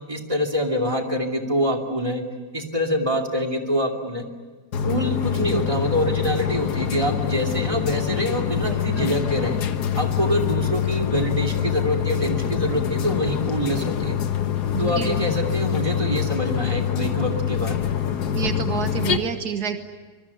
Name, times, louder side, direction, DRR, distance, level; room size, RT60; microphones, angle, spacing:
voice 1, 0.1-2.2 2.5-4.2 4.8-9.6 9.9-14.2 14.8-17.8, equal, 20° right, 6 dB, 2.7 m, -25 dB
sound 1, 4.7-19.2, left 9 dB, 80° left, 1.7 m, -25 dB
voice 2, 5.3-5.7 8.6-9.1 10.3-10.4 14.7-15.1 18.3-19.8, right 6 dB, 75° right, 8 dB, 1.8 m, -29 dB
26.0 x 22.0 x 9.8 m, 1.4 s
omnidirectional pair, 1.7 m